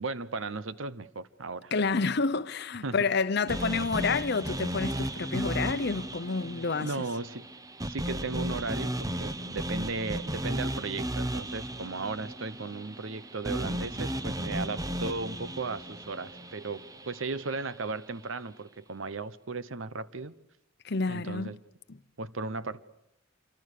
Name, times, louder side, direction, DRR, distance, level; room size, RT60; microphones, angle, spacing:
voice 1, 0.0-1.7 2.8-2.9 6.8-7.5 7.8-20.3 21.1-21.6 22.2-22.8, right 3 dB, 80° right, 0.9 m, -36 dB
voice 2, 1.7-6.9 20.8-21.5 21.9-22.0, left 4 dB, 55° left, 0.8 m, -29 dB
sound 1, 3.5-17.6, right 1 dB, 20° right, 0.8 m, -35 dB
27.0 x 25.0 x 6.7 m
head